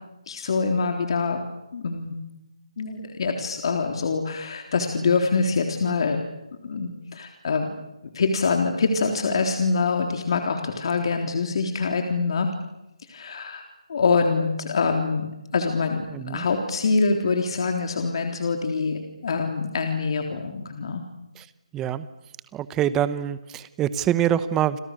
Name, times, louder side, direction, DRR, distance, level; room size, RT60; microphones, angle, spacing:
voice 1, 0.3-1.4 1.7-2.1 2.8-6.2 6.6-7.8 8.1-12.5 13.1-13.6 13.9-15.3 15.5-21.0, left 4 dB, 45° left, 4 dB, 3.7 m, -25 dB
voice 2, 16.1-16.4 21.7-22.1 22.5-24.8, right 10 dB, 10° right, 15 dB, 1.0 m, -25 dB
30.0 x 27.0 x 6.7 m, 0.91 s
figure-of-eight pair, 160°, 4 cm